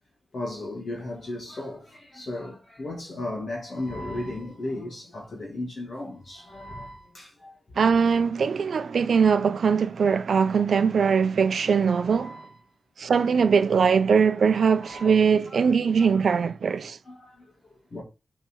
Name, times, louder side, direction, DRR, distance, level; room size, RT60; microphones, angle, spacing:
voice 1, 0.3-7.6 12.0-12.6 14.7-15.6 17.0-18.0, left 1 dB, 50° left, 2.7 m, -36 dB
voice 2, 7.8-12.4 13.0-17.0, right 6 dB, 70° right, 0.7 m, -21 dB
7.9 x 4.4 x 4.7 m
wide cardioid pair, 130°, 0 cm